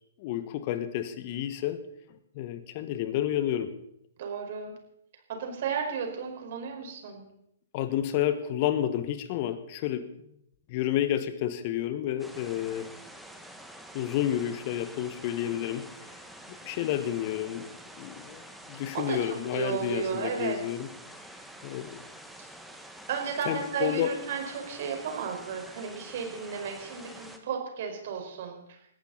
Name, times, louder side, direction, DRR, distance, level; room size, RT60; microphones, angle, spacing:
voice 1, 0.2-1.8 2.3-3.7 7.7-10.1 10.7-12.9 13.9-16.2 16.5-17.7 18.0-18.4 18.7-20.9 21.6-22.0 23.4-24.1, left 11 dB, 40° left, 11 dB, 1.5 m, -30 dB
voice 2, 4.2-4.7 5.3-7.2 18.9-19.2 19.5-20.6 22.4-22.5 23.1-28.8, right 6 dB, 50° right, 3 dB, 4.9 m, -33 dB
sound 1, 12.2-27.4, right 1 dB, ahead, 1.6 m, -47 dB
20.5 x 14.5 x 4.1 m, 0.74 s
figure-of-eight pair, 125°, 0 cm